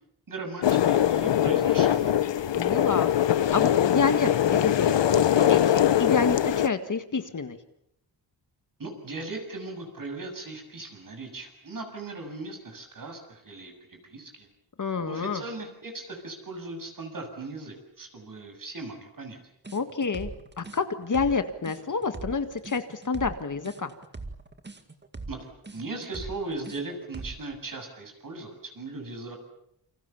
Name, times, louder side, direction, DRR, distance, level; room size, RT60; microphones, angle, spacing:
voice 1, 0.3-2.2 8.8-14.5 15.1-19.4 25.3-29.4, right 2 dB, 45° right, 5 dB, 7.5 m, -38 dB
sound 1, 0.6-6.7, left 11 dB, 75° left, 1.0 m, -22 dB
voice 2, 2.6-7.6 14.8-15.4 19.7-20.3 20.6-23.9, left 4 dB, 45° left, 9 dB, 1.8 m, -28 dB
sound 2, 19.6-27.5, right 3 dB, 25° right, 2.1 m, -41 dB
29.0 x 26.0 x 7.2 m, 0.76 s
wide cardioid pair, 130°, 44 cm